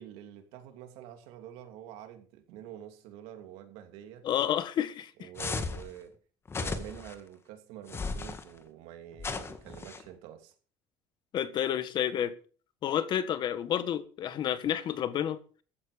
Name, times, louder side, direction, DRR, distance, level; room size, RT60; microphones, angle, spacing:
voice 1, 0.0-4.2 5.2-6.1 6.5-10.5, right 11 dB, 85° right, 2.9 m, -47 dB
voice 2, 4.2-5.3 11.3-12.3 12.8-15.4, left 10 dB, 50° left, 1.6 m, -30 dB
sound 1, 5.4-5.9 6.5-7.1 7.9-8.4 9.2-10.0, left 4 dB, 25° left, 1.8 m, -35 dB
15.0 x 10.5 x 5.1 m
cardioid pair, 130°, 10 cm